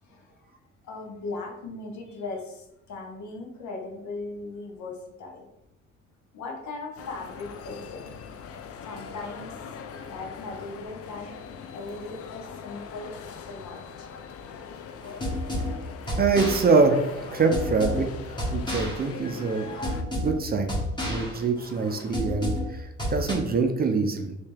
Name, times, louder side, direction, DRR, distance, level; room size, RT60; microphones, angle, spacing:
voice 1, 0.0-0.5 0.8-5.5 6.3-8.0 8.4-11.3 11.7-13.1 13.4-14.1, left 3 dB, 70° left, 2 dB, 0.9 m, -39 dB
sound 1, 7.0-20.0, left 6 dB, 50° left, 0.4 m, -42 dB
sound 2, 15.0-23.3, left 1 dB, 15° left, 1.2 m, -31 dB
voice 2, 16.2-19.7 20.2-20.8 21.0-24.4, right 4 dB, 30° right, 5 dB, 0.5 m, -24 dB
3.2 x 2.8 x 3.3 m, 0.84 s
cardioid pair, 90°, 30 cm